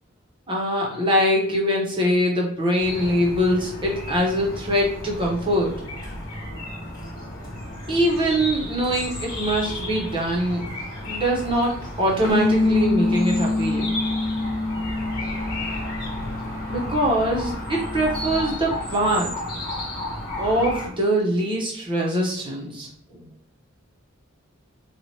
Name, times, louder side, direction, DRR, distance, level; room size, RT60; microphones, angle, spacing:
voice 1, 0.5-5.8 7.9-10.7 11.1-14.0 16.7-19.3 20.4-23.3, equal, 25° right, -2 dB, 0.9 m, -23 dB
sound 1, 2.8-20.9, left 1 dB, 20° left, 1.3 m, -33 dB
Bass guitar, 12.3-18.5, left 2 dB, 45° left, 0.4 m, -26 dB
4.5 x 2.4 x 2.8 m, 0.64 s
head